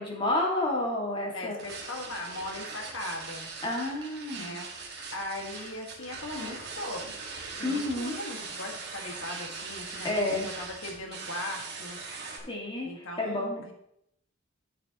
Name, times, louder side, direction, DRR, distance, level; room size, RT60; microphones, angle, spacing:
voice 1, 0.0-1.6 3.6-4.5 7.6-8.1 10.0-10.5 12.5-13.6, left 1 dB, 25° left, -1 dB, 2.0 m, -30 dB
voice 2, 1.3-3.5 4.4-4.6 5.1-7.0 7.6-12.0 12.8-13.7, left 1 dB, 65° left, 2 dB, 1.8 m, -39 dB
sound 1, 1.6-12.4, right 4 dB, 50° right, 1.9 m, -41 dB
12.0 x 6.8 x 3.0 m, 0.75 s
head